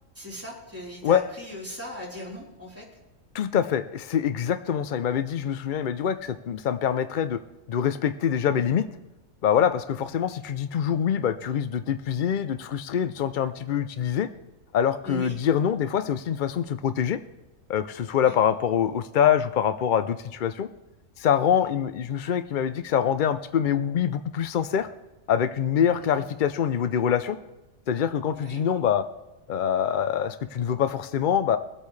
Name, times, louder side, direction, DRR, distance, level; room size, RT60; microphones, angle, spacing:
voice 1, 0.1-3.0 10.0-10.1 15.0-15.4 18.2-18.3 21.5-21.7 25.9-26.3 28.3-28.6, equal, 10° right, -5 dB, 3.8 m, -39 dB
voice 2, 3.3-7.4 7.7-8.9 9.4-14.3 14.7-17.2 17.7-20.7 21.2-24.9 25.3-27.4 27.9-29.0 29.5-31.6, left 8 dB, 70° left, 11 dB, 0.4 m, -25 dB
23.0 x 8.3 x 3.2 m, 1.0 s
omnidirectional pair, 1.5 m